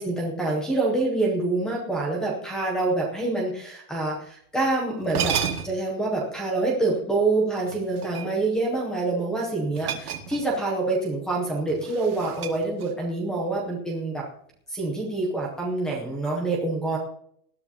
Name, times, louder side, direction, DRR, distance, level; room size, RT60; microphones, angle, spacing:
voice 1, 0.0-5.4 5.6-14.3 14.7-17.0, right 2 dB, ahead, -1 dB, 0.6 m, -26 dB
sound 1, 4.6-4.7 5.0-5.9 7.7-8.6 9.7-10.7 11.0-11.2 11.7-13.1, right 8 dB, 75° right, 2.1 m, -32 dB
19.5 x 11.5 x 2.8 m, 0.67 s
supercardioid pair, 175°, 46 cm